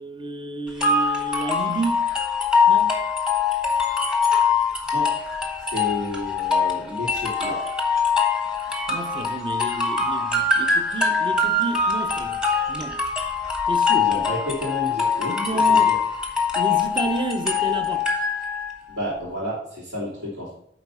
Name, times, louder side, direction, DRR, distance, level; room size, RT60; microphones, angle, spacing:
voice 1, 0.0-2.1 2.7-3.0 8.9-13.0 13.7-14.1 15.3-16.0 16.6-18.1, right 2 dB, 30° right, 0.7 m, -31 dB
sound 1, 0.8-18.7, left 5 dB, 5° right, 1.3 m, -23 dB
voice 2, 5.7-7.6 13.9-15.9 18.9-20.5, left 1 dB, 75° right, 3.2 m, -31 dB
9.4 x 4.0 x 5.5 m
head